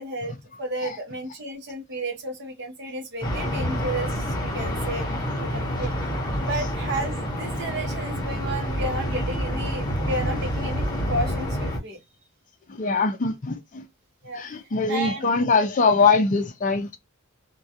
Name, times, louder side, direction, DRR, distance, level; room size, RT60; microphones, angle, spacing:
voice 1, 0.0-5.1 5.4-5.9 6.4-10.8 11.1-12.0 14.2-14.6 14.9-15.3, right 1 dB, 55° right, 0.7 m, -32 dB
sound 1, 3.2-11.8, equal, 20° left, 1.0 m, -28 dB
voice 2, 12.7-13.8 14.3-16.9, left 4 dB, 35° left, 0.4 m, -22 dB
2.2 x 2.2 x 2.6 m
head